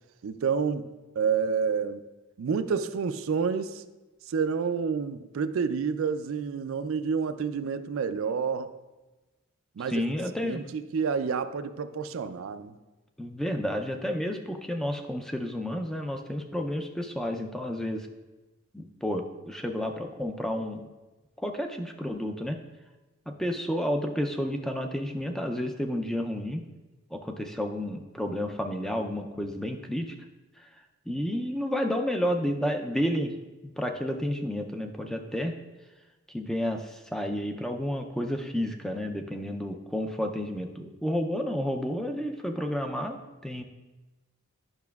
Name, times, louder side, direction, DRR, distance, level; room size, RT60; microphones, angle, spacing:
voice 1, 0.2-0.9 1.2-2.0 2.4-3.8 4.3-8.7 9.8-10.0 10.4-12.8, right 6 dB, 65° right, 11 dB, 0.4 m, -29 dB
voice 2, 9.8-10.6 13.2-18.1 18.7-20.9 21.4-22.6 23.3-26.6 27.1-30.1 30.6-30.7 31.1-33.4 33.8-35.5 36.3-43.6, equal, ahead, 4 dB, 0.4 m, -31 dB
10.5 x 5.9 x 2.3 m, 1.1 s
head